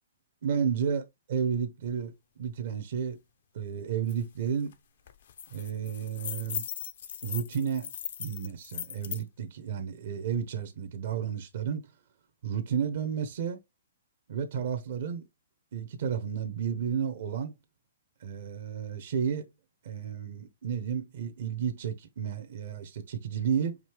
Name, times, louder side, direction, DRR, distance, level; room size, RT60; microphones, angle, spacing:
voice 1, 0.4-3.2 3.5-4.8 5.5-6.7 7.2-7.9 8.2-11.9 12.4-13.6 14.3-15.3 15.7-17.5 18.2-19.5 19.8-23.8, right 7 dB, 60° right, 0.9 m, -32 dB
sound 1, 4.1-4.2 4.5-4.7 5.1-9.2, left 10 dB, 60° left, 0.7 m, -39 dB
5.2 x 2.8 x 3.1 m
hypercardioid pair, 135°, 0 cm